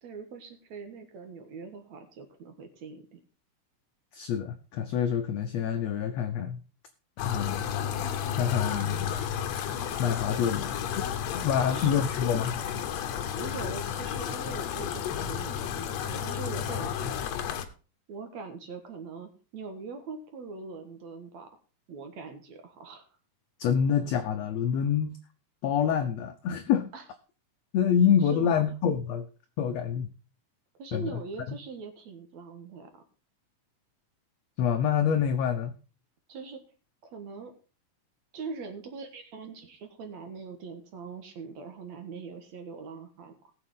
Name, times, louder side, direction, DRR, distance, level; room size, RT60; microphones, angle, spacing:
voice 1, 0.0-3.2 11.5-12.0 13.4-17.3 18.1-21.5 21.9-23.1 26.9-27.0 28.2-28.7 30.8-33.0 36.3-36.6 37.0-37.5 38.3-43.4, right 4 dB, 60° right, 6 dB, 2.4 m, -42 dB
voice 2, 4.1-6.6 7.2-7.6 8.4-9.1 10.0-10.8 11.3-12.6 23.6-25.2 25.6-26.9 27.7-29.3 29.6-30.1 30.9-31.2 34.6-35.7, left 8 dB, 85° left, 7 dB, 1.5 m, -26 dB
sound 1, 7.2-17.7, left 9 dB, 65° left, 1.7 m, -32 dB
19.0 x 7.0 x 3.7 m, 0.34 s
omnidirectional pair, 4.1 m